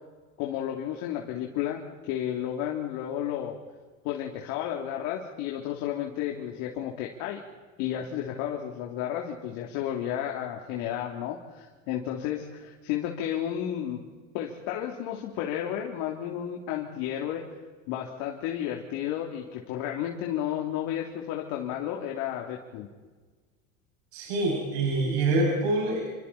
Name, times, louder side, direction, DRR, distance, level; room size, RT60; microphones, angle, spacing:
voice 1, 0.4-1.8 2.1-3.5 4.0-7.4 7.8-14.0 14.3-17.4 17.9-22.9, left 10 dB, 60° left, 0 dB, 3.2 m, -32 dB
voice 2, 24.1-26.0, right 2 dB, 60° right, -2 dB, 7.0 m, -25 dB
29.0 x 25.5 x 4.3 m, 1.4 s
hypercardioid pair, 90°, 39 cm